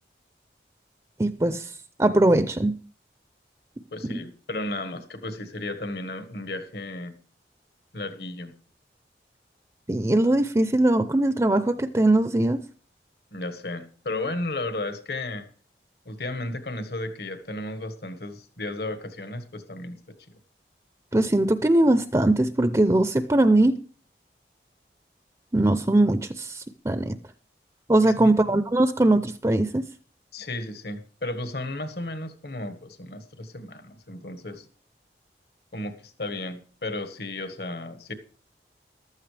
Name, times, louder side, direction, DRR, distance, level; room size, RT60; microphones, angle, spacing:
voice 1, 1.2-1.7 2.0-2.7 9.9-12.6 21.1-23.8 25.5-27.2 27.9-29.8, right 1 dB, 20° right, 10 dB, 0.5 m, -21 dB
voice 2, 3.9-7.2 7.9-8.5 13.3-15.5 16.0-20.1 28.0-28.3 30.3-34.7 35.7-38.1, left 2 dB, 65° left, 9 dB, 1.5 m, -34 dB
15.0 x 12.5 x 3.3 m, 0.41 s
head